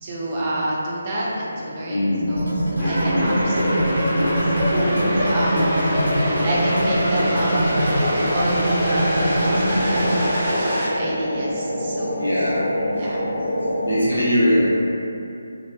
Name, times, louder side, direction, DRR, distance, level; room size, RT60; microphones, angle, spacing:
voice 1, 0.0-2.5 2.8-3.8 4.6-12.5 12.9-13.3, right 1 dB, 30° right, -6 dB, 0.4 m, -29 dB
sound 1, 1.0-13.9, left 1 dB, 60° left, 0.4 m, -30 dB
voice 2, 1.9-2.3 2.7-3.1 3.7-3.9 12.2-12.6 13.8-14.9, equal, 80° left, -9 dB, 0.9 m, -21 dB
sound 2, 2.4-10.2, right 1 dB, 90° right, 0.4 m, -24 dB
sound 3, 2.8-10.9, equal, 10° right, 0.8 m, -23 dB
2.2 x 2.1 x 2.8 m, 2.6 s
figure-of-eight pair, 150°, 0 cm